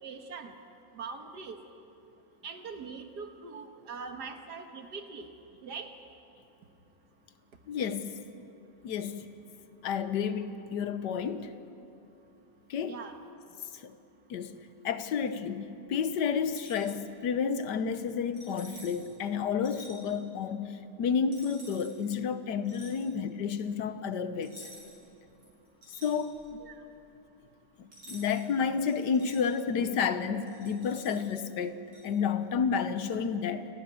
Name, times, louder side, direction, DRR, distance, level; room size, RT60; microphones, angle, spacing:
voice 1, 0.0-0.5 0.9-1.6 2.4-5.3 5.6-5.9 12.8-13.2 26.6-26.8, right 5 dB, 65° right, 2.0 m, -42 dB
voice 2, 7.7-8.2 8.8-9.3 9.8-11.5 12.7-12.9 13.7-14.0 14.3-14.6 14.8-24.7 26.0-26.4 27.8-33.7, left 6 dB, 75° left, 1.5 m, -31 dB
sound 1, 16.4-16.9 18.3-19.1 19.6-20.0 21.3-21.9 22.6-23.0 24.4-25.0 25.4-26.6 27.9-28.5 28.9-29.4 30.5-31.3 31.9-32.1, equal, 90° right, 6.2 m, -50 dB
29.0 x 12.0 x 9.5 m
omnidirectional pair, 1.9 m